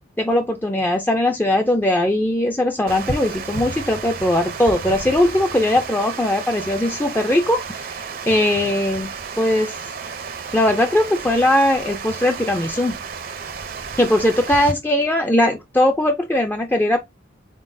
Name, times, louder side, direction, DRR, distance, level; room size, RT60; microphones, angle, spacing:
voice 1, 0.2-9.1 9.4-9.7 10.5-13.0 14.0-17.0, left 1 dB, 10° left, 0.4 m, -19 dB
Water, 2.9-14.7, right 5 dB, 50° right, 0.6 m, -32 dB
4.0 x 3.7 x 2.6 m
head